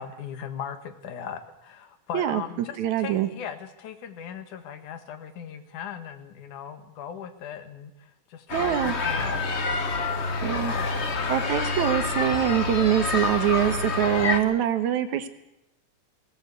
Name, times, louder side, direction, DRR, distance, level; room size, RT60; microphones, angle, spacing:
voice 1, 0.0-11.5, left 8 dB, 80° left, 8 dB, 3.1 m, -39 dB
voice 2, 2.1-3.3 8.5-8.9 10.4-10.7 11.3-15.3, right 11 dB, 75° right, 10 dB, 2.5 m, -24 dB
sound 1, 8.5-14.4, left 4 dB, 55° left, 0.7 m, -27 dB
18.5 x 18.0 x 8.2 m, 0.91 s
omnidirectional pair, 3.5 m